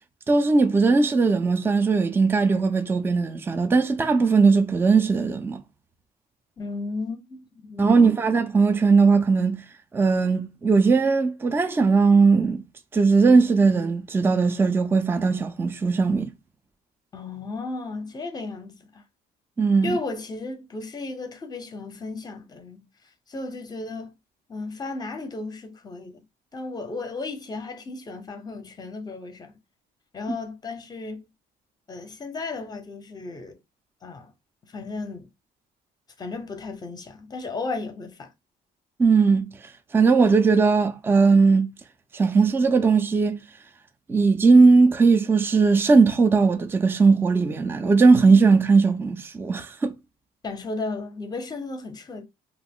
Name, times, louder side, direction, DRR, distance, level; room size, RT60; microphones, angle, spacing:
voice 1, 0.3-5.6 7.8-9.6 9.9-12.6 12.9-16.3 19.6-20.0 39.0-39.5 39.9-41.7 42.1-43.4 44.1-49.9, right 4 dB, 15° right, 0.3 m, -19 dB
voice 2, 6.6-8.3 17.1-18.8 19.8-22.8 23.3-24.1 24.5-26.2 26.5-29.6 30.1-31.3 31.9-33.6 34.0-34.3 34.6-35.3 36.2-38.3 50.4-52.2, left 3 dB, 25° left, 0.6 m, -34 dB
2.4 x 2.0 x 3.4 m
cardioid pair, 110°, 17 cm